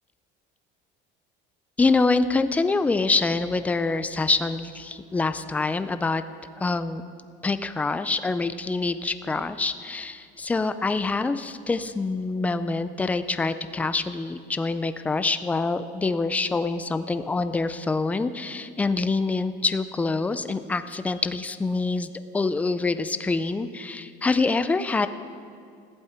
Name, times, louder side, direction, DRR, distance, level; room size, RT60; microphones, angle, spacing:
voice 1, 1.8-6.2 6.6-7.0 7.4-22.1 22.3-25.1, left 3 dB, 10° left, 11 dB, 0.4 m, -25 dB
20.5 x 15.5 x 4.4 m, 2.3 s
cardioid pair, 175°, 19 cm